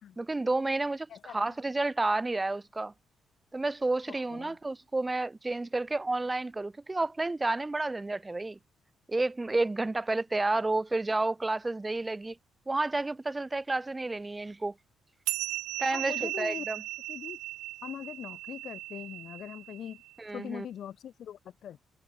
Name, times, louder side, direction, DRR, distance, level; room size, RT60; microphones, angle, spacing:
voice 1, 0.2-2.9 3.5-8.6 9.1-12.4 12.7-14.7 15.8-16.8 20.2-20.6, right 2 dB, 20° right, 1.5 m, -30 dB
voice 2, 1.1-1.5 4.3-4.6 15.9-16.7 17.1-17.4 17.8-20.0 20.3-21.8, left 10 dB, 55° left, 2.0 m, -41 dB
sound 1, 15.3-20.1, right 19 dB, 65° right, 0.8 m, -37 dB
figure-of-eight pair, 40°, 0 cm